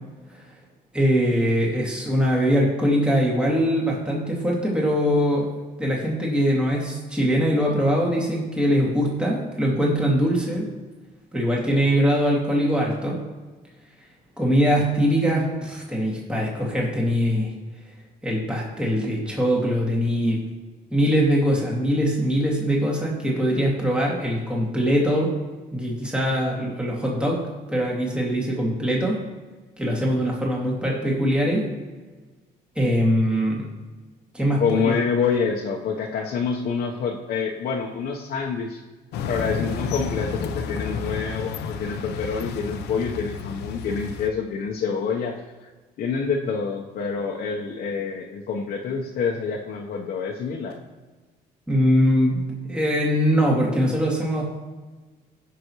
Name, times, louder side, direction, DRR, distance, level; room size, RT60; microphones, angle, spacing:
voice 1, 0.9-5.5 5.8-10.7 11.3-13.2 14.4-17.5 18.2-20.4 20.9-25.3 25.7-27.4 27.7-29.2 29.8-31.6 32.8-33.7 34.3-35.0 51.7-52.4 52.7-54.4, equal, 5° right, -3 dB, 2.3 m, -22 dB
voice 2, 34.6-38.8 39.3-45.7 46.0-50.8, left 5 dB, 60° left, -2 dB, 1.1 m, -27 dB
sound 1, 39.1-44.3, left 5 dB, 80° left, 0.8 m, -31 dB
16.5 x 6.1 x 3.1 m, 1.3 s
cardioid pair, 110°, 17 cm